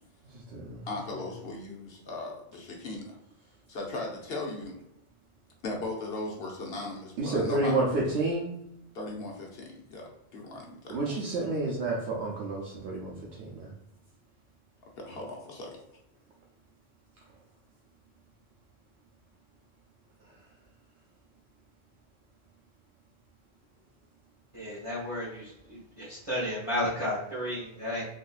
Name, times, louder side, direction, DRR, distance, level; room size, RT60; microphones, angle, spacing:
voice 1, 0.2-0.8 7.2-8.5 10.9-13.1 13.4-13.7, right 2 dB, 80° right, -4 dB, 1.0 m, -30 dB
voice 2, 0.9-3.2 3.7-4.8 5.6-8.0 8.9-11.2 11.4-11.5 15.0-15.8, left 2 dB, 70° left, -1 dB, 1.0 m, -38 dB
voice 3, 24.5-28.1, left 1 dB, 30° right, -9 dB, 1.1 m, -33 dB
3.8 x 2.7 x 2.4 m, 0.82 s
omnidirectional pair, 1.1 m